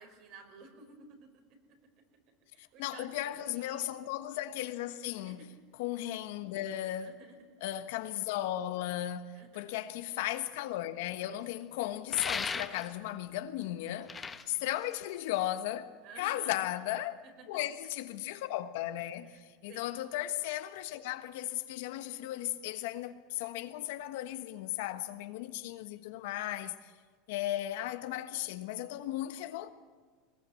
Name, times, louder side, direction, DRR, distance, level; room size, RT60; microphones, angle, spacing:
voice 1, 0.0-2.0 2.5-3.9 5.3-5.5 7.0-7.3 9.3-9.7 11.2-11.3 14.5-14.6 16.0-16.5 17.2-17.5 19.2-19.4 19.7-19.8, right 4 dB, 50° right, 4.7 m, -54 dB
voice 2, 2.6-5.5 5.8-7.1 7.6-14.1 14.5-17.2 17.5-26.9 27.3-29.7, left 14 dB, 75° left, 1.3 m, -36 dB
sound 1, 12.1-13.1 13.9-15.6, left 5 dB, 15° left, 1.0 m, -38 dB
22.0 x 20.5 x 7.8 m
supercardioid pair, 150°, 0 cm